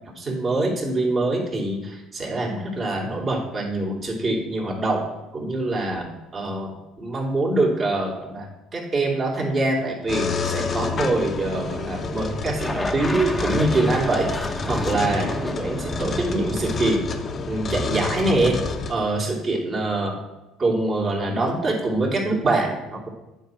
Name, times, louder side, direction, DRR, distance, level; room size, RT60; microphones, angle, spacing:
voice 1, 0.2-5.1 5.3-8.5 8.7-14.3 14.7-17.0 17.5-18.6 18.9-20.1 20.6-23.1, right 2 dB, 35° right, -1 dB, 2.9 m, -24 dB
sound 1, 10.1-18.9, left 4 dB, 40° left, 1.0 m, -29 dB
sound 2, 12.6-17.9, left 1 dB, 10° left, 1.1 m, -32 dB
9.2 x 4.6 x 7.6 m, 1.0 s
supercardioid pair, 85°, 0 cm